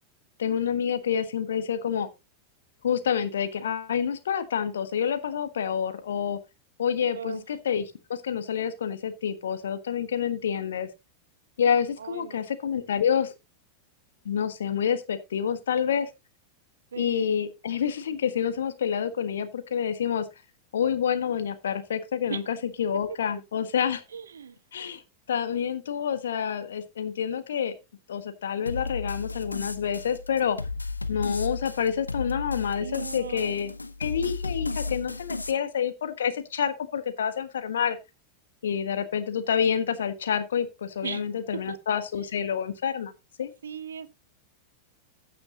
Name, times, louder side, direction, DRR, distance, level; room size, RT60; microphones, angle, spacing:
voice 1, 0.4-2.1 2.8-6.4 6.8-10.9 11.6-13.3 14.2-16.1 17.0-20.3 20.7-24.0 24.7-25.0 25.3-27.7 28.1-30.6 31.1-33.7 34.0-38.0 38.6-43.1 43.4-43.5, left 8 dB, 65° left, 1.4 m, -28 dB
voice 2, 7.1-7.4 12.0-12.5 16.9-17.5 22.3-22.5 24.1-24.6 32.8-33.6 41.0-41.3 41.5-42.0 43.6-44.2, right 7 dB, 70° right, 0.8 m, -38 dB
sound 1, 28.7-35.5, left 3 dB, 80° left, 0.8 m, -34 dB
15.0 x 6.8 x 2.9 m
figure-of-eight pair, 90°, 0 cm